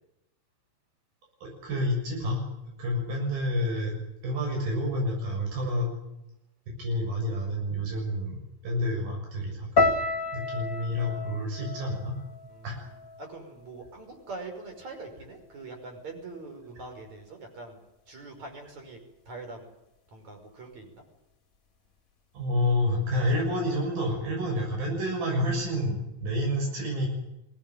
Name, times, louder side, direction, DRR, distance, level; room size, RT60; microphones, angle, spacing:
voice 1, 1.4-2.4 2.8-3.9 4.2-5.9 6.7-9.9 10.3-12.2 12.6-12.8 22.3-27.1, left 1 dB, 90° right, 0 dB, 8.7 m, -29 dB
sound 1, 9.8-14.0 14.2-15.0 15.6-15.8, left 3 dB, 25° left, 2.4 m, -31 dB
voice 2, 13.2-17.8 18.1-19.0 19.3-19.7 20.1-21.0, right 3 dB, 50° right, 3 dB, 6.8 m, -43 dB
23.0 x 18.5 x 9.4 m, 0.88 s
omnidirectional pair, 4.1 m